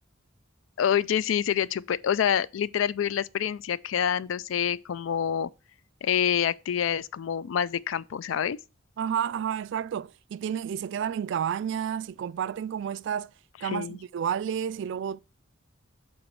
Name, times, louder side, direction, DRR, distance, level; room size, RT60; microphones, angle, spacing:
voice 1, 0.8-5.5 6.0-8.6 13.6-14.0, left 9 dB, 75° left, 0.4 m, -27 dB
voice 2, 9.0-13.3 13.6-15.2, right 8 dB, 65° right, 0.3 m, -30 dB
7.9 x 4.0 x 4.5 m
head